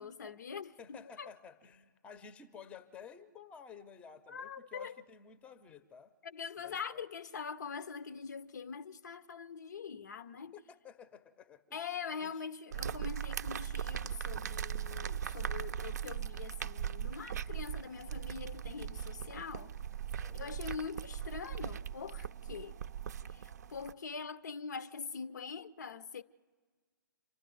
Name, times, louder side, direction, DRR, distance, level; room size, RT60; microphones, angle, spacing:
voice 1, 0.0-1.3 4.3-5.0 6.2-10.5 11.7-19.8 20.2-22.8 23.3-26.2, left 6 dB, 60° left, 0.5 m, -43 dB
voice 2, 0.8-6.1 6.6-7.0 10.5-11.8 12.1-12.3 20.2-20.6, left 7 dB, 10° left, 0.6 m, -53 dB
sound 1, 12.7-23.9, right 9 dB, 55° right, 0.5 m, -39 dB
26.5 x 11.5 x 9.4 m
figure-of-eight pair, 130°, 11 cm